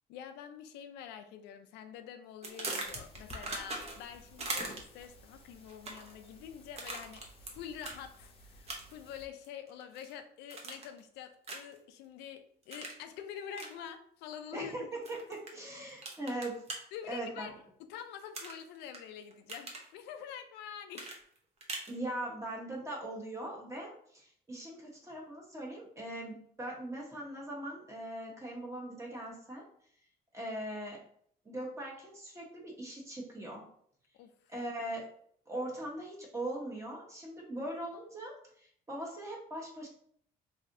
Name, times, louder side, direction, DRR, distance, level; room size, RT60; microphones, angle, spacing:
voice 1, 0.1-14.7 16.9-17.5 17.8-21.2 34.1-34.5, left 8 dB, 90° left, 8 dB, 0.4 m, -46 dB
sound 1, 2.4-4.1 4.4-5.0 5.7-6.1 6.8-7.5 7.8-8.0 8.7-9.1 9.4-10.1 10.5-11.0 11.4-11.8 12.7-13.0 13.5-13.7 15.0-15.5 16.0-16.8 18.3-19.0 19.3-19.9 20.9-21.9, right 2 dB, 40° right, 0.8 m, -40 dB
sound 2, 2.8-9.3, left 1 dB, 35° left, 0.7 m, -55 dB
voice 2, 15.1-16.6 17.1-17.5 21.9-29.6 30.3-31.0 31.4-33.6 34.5-35.0 35.5-39.9, right 1 dB, 15° right, -3 dB, 1.1 m, -40 dB
3.2 x 2.7 x 2.6 m, 0.62 s
cardioid pair, 110°, 17 cm